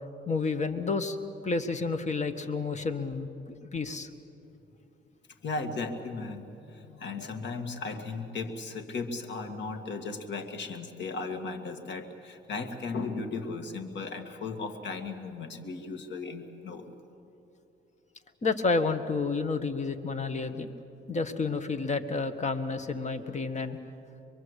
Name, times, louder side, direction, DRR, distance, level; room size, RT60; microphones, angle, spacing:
voice 1, 0.3-1.2 1.4-3.3 3.7-4.1 18.4-20.7 21.1-23.8, left 4 dB, 35° left, 9 dB, 1.6 m, -30 dB
voice 2, 5.4-16.9, left 3 dB, 65° left, 6 dB, 2.3 m, -36 dB
24.5 x 23.0 x 8.3 m, 2.9 s
cardioid pair, 90°, 20 cm